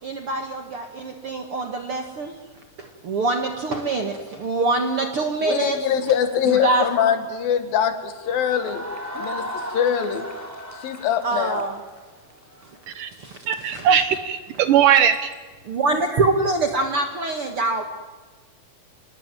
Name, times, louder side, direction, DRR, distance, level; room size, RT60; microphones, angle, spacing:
voice 1, 0.0-2.4 2.8-5.8 6.4-7.0 11.2-11.8 13.2-14.0 15.6-17.8, right 3 dB, 50° right, 4 dB, 1.7 m, -25 dB
voice 2, 5.4-8.8 9.1-10.3 10.7-11.6, left 8 dB, 70° left, 8 dB, 3.4 m, -23 dB
sound 1, 8.2-13.0, equal, 5° right, 2.9 m, -35 dB
voice 3, 13.5-15.3, right 9 dB, 70° right, 11 dB, 2.2 m, -19 dB
28.0 x 20.0 x 9.1 m, 1.3 s
omnidirectional pair, 4.4 m